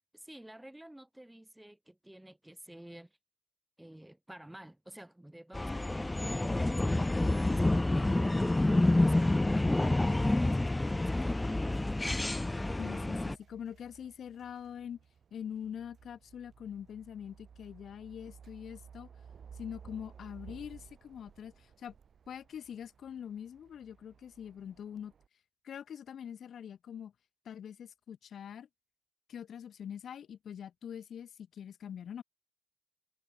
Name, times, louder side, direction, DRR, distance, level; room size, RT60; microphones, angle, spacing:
voice 1, 0.0-3.1 3.8-8.1 8.8-12.1, right 1 dB, 5° right, 2.2 m, -51 dB
sound 1, 5.5-13.3, left 2 dB, 15° left, 0.6 m, -28 dB
sound 2, 10.3-25.3, right 7 dB, 50° right, 3.8 m, -57 dB
voice 2, 12.8-15.0 15.3-19.1 19.5-22.0 22.3-25.1 25.6-27.1 27.4-28.7 29.3-32.2, left 8 dB, 60° left, 2.3 m, -44 dB
cardioid pair, 90°, 0 cm